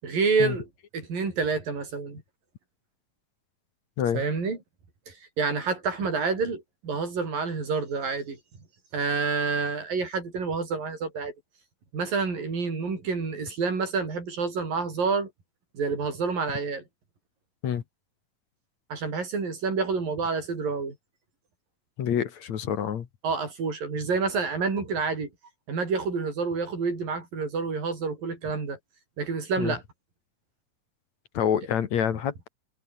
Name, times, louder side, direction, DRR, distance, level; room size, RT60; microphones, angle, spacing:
voice 1, 0.0-2.2 4.1-4.6 5.1-8.4 8.9-11.3 11.9-15.3 15.7-16.8 18.9-21.0 23.2-25.3 25.7-28.8 29.2-29.8, right 4 dB, 90° right, 8.0 m, -28 dB
voice 2, 22.0-23.1 29.6-29.7 31.3-32.5, left 8 dB, 60° left, 2.9 m, -27 dB
omnidirectional pair, 3.9 m